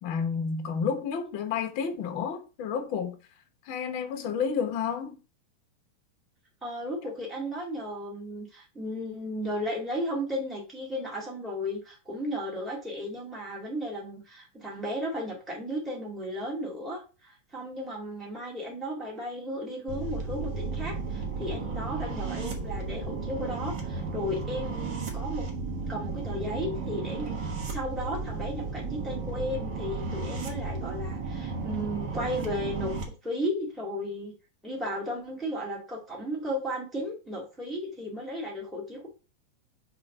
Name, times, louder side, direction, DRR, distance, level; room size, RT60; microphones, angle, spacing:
voice 1, 0.0-3.2 3.7-5.2, left 6 dB, 85° left, 1.1 m, -30 dB
voice 2, 6.6-25.5 25.9-32.9 33.2-34.3 34.6-39.1, equal, ahead, 0.4 m, -34 dB
sound 1, 19.9-33.0, right 4 dB, 70° right, 1.0 m, -34 dB
4.9 x 4.3 x 5.3 m
omnidirectional pair, 4.1 m